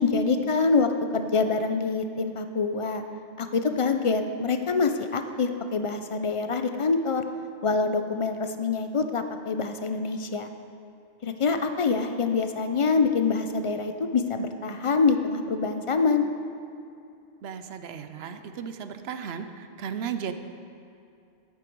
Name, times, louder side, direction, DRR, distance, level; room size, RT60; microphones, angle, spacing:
voice 1, 0.0-3.0 3.4-7.2 7.6-10.5 11.2-16.3, left 4 dB, 55° left, 7 dB, 0.3 m, -25 dB
voice 2, 17.4-20.3, right 7 dB, 70° right, 9 dB, 0.9 m, -35 dB
11.5 x 8.5 x 4.6 m, 2.6 s
omnidirectional pair, 1.2 m